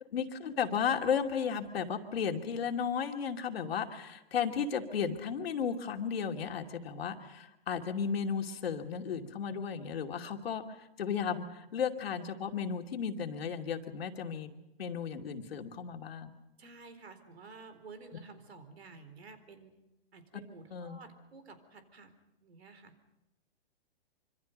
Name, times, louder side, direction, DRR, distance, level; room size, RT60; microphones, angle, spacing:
voice 1, 0.1-14.5 14.8-16.3 20.7-21.0, left 7 dB, 70° left, 4 dB, 2.7 m, -34 dB
voice 2, 16.6-19.7 20.1-22.1 22.4-22.9, right 4 dB, 90° right, 9 dB, 4.3 m, -52 dB
26.0 x 25.5 x 5.3 m, 0.92 s
hypercardioid pair, 145°, 31 cm